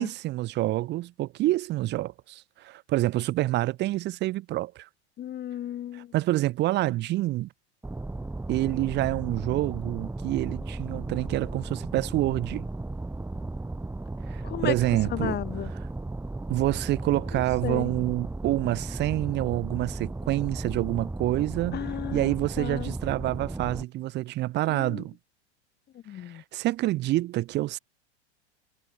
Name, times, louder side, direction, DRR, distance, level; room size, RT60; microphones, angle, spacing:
voice 1, 0.0-4.9 5.9-7.5 8.5-12.7 14.3-15.4 16.5-25.2 26.3-27.8, right 16 dB, 30° right, 1.1 m, -27 dB
voice 2, 5.2-6.1 14.4-14.7 15.1-15.7 17.3-17.9 21.7-22.9 24.7-25.0 26.0-26.4, left 11 dB, 30° left, 4.5 m, -34 dB
sound 1, 7.8-23.8, right 2 dB, 5° right, 6.7 m, -35 dB
figure-of-eight pair, 90°, 34 cm